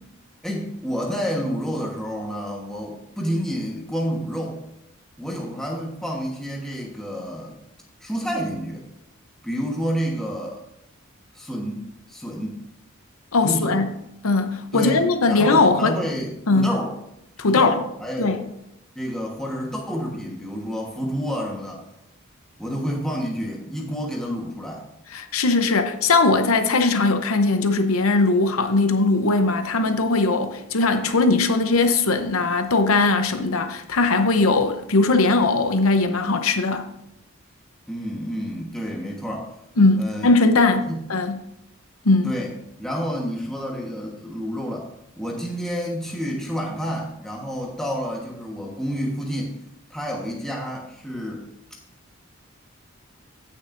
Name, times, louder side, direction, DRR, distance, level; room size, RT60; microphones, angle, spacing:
voice 1, 0.4-4.6 5.2-7.6 8.0-8.8 9.4-10.6 11.3-12.6 13.4-13.8 14.7-16.9 17.4-18.4 18.9-21.8 22.6-24.8 37.9-39.5 40.0-40.3 40.9-41.0 42.2-42.5 42.8-44.9 45.2-49.6 49.9-51.4, equal, ahead, 1.2 m, -29 dB
voice 2, 13.3-13.9 14.2-16.0 16.5-16.7 17.4-17.7 18.2-18.4 25.1-36.8 39.8-41.4 42.0-42.3, left 3 dB, 85° left, 0.8 m, -19 dB
15.5 x 6.3 x 2.6 m
head